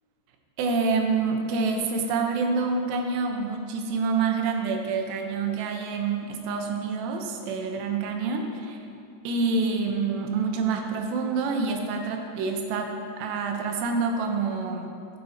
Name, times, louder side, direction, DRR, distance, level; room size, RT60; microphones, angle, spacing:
voice 1, 0.6-8.8 9.2-14.9, right 4 dB, 75° right, 3 dB, 2.9 m, -27 dB
14.5 x 7.4 x 4.3 m, 2.5 s
omnidirectional pair, 5.2 m